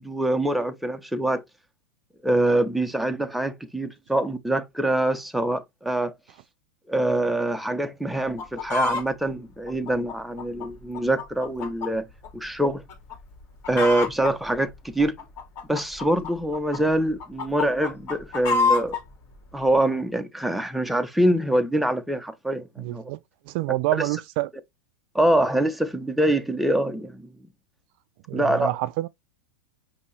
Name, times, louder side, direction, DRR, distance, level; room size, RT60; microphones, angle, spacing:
voice 1, 0.0-1.4 2.2-6.1 6.9-12.0 12.3-12.8 13.7-15.1 15.7-19.0 19.5-23.0 25.1-27.3 28.3-28.7, right 1 dB, ahead, 0.7 m, -24 dB
Chicken rooster, 8.2-9.1 9.7-11.9 12.2-12.3 12.9-13.2 13.4-14.3 15.0-16.8 17.2-19.0 19.7-19.8, left 4 dB, 40° left, 2.3 m, -27 dB
voice 2, 22.8-23.2 23.5-24.5 28.3-29.1, right 17 dB, 55° right, 0.3 m, -27 dB
5.3 x 2.8 x 3.2 m
hypercardioid pair, 125°, 7 cm